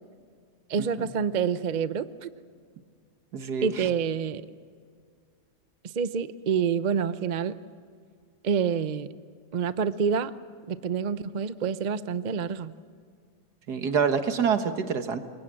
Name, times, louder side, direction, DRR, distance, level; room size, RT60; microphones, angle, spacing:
voice 1, 0.7-2.3 3.6-4.4 5.8-7.5 8.4-9.1 9.5-10.3 10.7-12.7, right 6 dB, 50° right, 13 dB, 0.5 m, -27 dB
voice 2, 3.3-3.9 13.7-15.2, right 6 dB, 70° right, 7 dB, 2.0 m, -27 dB
27.0 x 22.0 x 7.7 m, 2.1 s
omnidirectional pair, 1.8 m